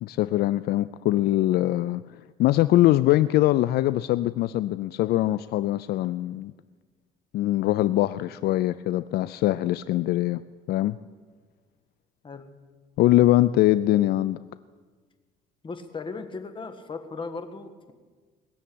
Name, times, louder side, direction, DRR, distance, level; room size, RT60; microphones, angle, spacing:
voice 1, 0.0-2.0 2.4-6.5 7.3-10.4 10.7-11.0 13.0-14.4, left 15 dB, 70° left, 15 dB, 0.4 m, -22 dB
voice 2, 12.2-12.5 15.6-17.9, left 4 dB, 30° left, 8 dB, 1.5 m, -37 dB
20.5 x 7.2 x 8.6 m, 1.5 s
cardioid pair, 110°, 17 cm